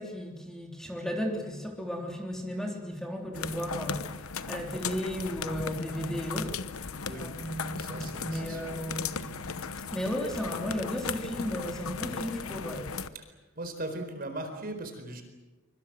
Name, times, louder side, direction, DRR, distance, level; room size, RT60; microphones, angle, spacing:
voice 1, 0.0-6.9 7.1-9.2 9.9-12.9, equal, 5° left, 0 dB, 3.5 m, -35 dB
sound 1, 3.3-13.1, left 5 dB, 90° left, 1.0 m, -37 dB
voice 2, 7.8-8.6 13.2-13.3 13.6-15.2, right 1 dB, 45° right, 6 dB, 4.4 m, -38 dB
24.5 x 24.5 x 7.8 m, 1.2 s
head